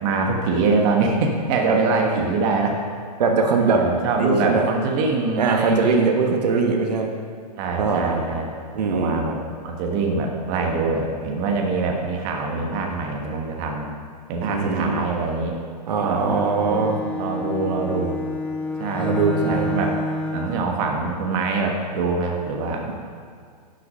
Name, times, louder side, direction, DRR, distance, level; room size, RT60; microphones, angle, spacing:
voice 1, 0.0-2.8 3.6-6.6 7.5-8.5 8.9-13.9 14.3-15.6 16.0-18.2 18.8-20.0 20.3-22.9, right 3 dB, 35° right, 1 dB, 1.2 m, -24 dB
voice 2, 3.2-3.9 4.2-4.7 5.4-7.1 7.8-8.2 8.7-9.2 14.4-15.0 15.9-17.0 19.0-19.8, right 4 dB, 70° right, 3 dB, 1.3 m, -21 dB
Bowed string instrument, 15.9-20.7, left 2 dB, 5° left, 0.5 m, -29 dB
10.5 x 6.0 x 5.6 m, 2.1 s
hypercardioid pair, 150°, 21 cm